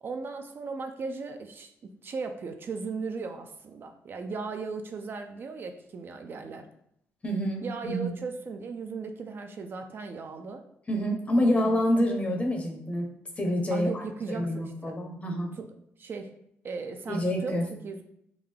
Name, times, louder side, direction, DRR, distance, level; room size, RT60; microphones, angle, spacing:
voice 1, 0.0-6.7 7.6-10.7 11.4-11.8 13.7-15.0 15.5-15.7 16.0-16.3 16.6-18.0, right 4 dB, 45° right, 6 dB, 0.3 m, -37 dB
voice 2, 7.2-8.1 10.9-13.1 13.4-14.0 14.3-15.5 17.1-17.7, equal, 25° left, 2 dB, 0.7 m, -27 dB
3.6 x 2.3 x 3.2 m, 0.73 s
cardioid pair, 95°, 5 cm